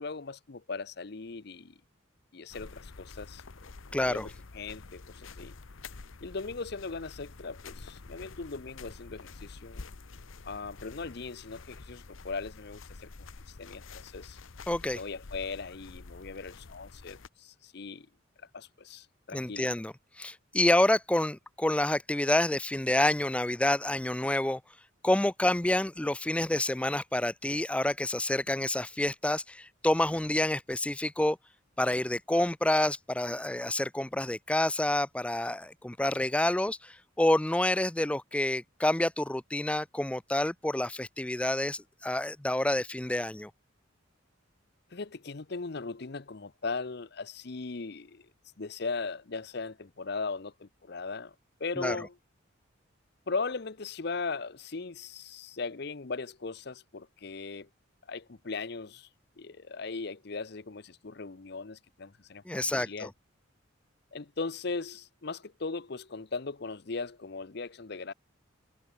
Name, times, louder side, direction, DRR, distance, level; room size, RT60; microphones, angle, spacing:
voice 1, 0.0-1.7 2.3-5.5 6.2-9.8 10.4-13.1 13.5-14.4 14.9-18.1 18.5-19.7 44.9-48.3 48.6-51.3 51.6-52.2 53.3-57.7 58.1-59.1 59.4-63.1 64.1-68.1, left 4 dB, 55° left, 0.8 m, -38 dB
sound 1, 2.5-17.3, left 3 dB, 80° left, 1.0 m, -48 dB
voice 2, 3.9-4.3 14.7-15.0 19.3-24.6 25.0-31.4 31.8-43.5 51.8-52.0 62.5-63.1, left 1 dB, 5° left, 0.4 m, -28 dB
head